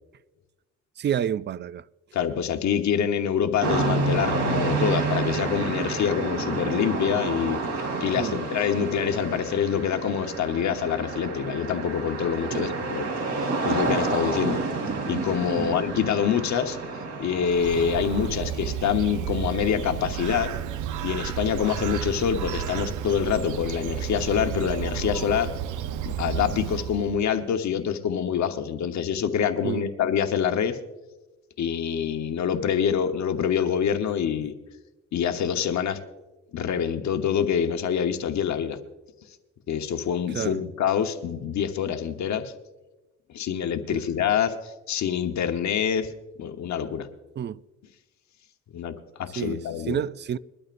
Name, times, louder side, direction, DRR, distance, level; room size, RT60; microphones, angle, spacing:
voice 1, 1.0-1.8 8.2-8.4 12.5-12.7 15.6-15.7 29.6-29.9 40.3-40.6 43.9-44.0 47.4-47.6 49.4-50.4, right 9 dB, 35° right, 0.4 m, -29 dB
voice 2, 2.1-7.6 8.0-13.1 13.4-14.6 15.1-16.8 17.2-20.5 21.0-25.5 26.0-30.8 31.6-34.5 35.1-36.0 36.5-38.8 39.7-42.5 43.3-46.1 46.4-47.1 48.7-50.0, left 8 dB, 65° left, 1.1 m, -26 dB
sound 1, 3.6-18.3, right 3 dB, 60° right, 3.9 m, -29 dB
Bird, 17.2-27.2, right 9 dB, 80° right, 0.8 m, -32 dB
22.0 x 12.5 x 2.6 m
cardioid pair, 90°, 30 cm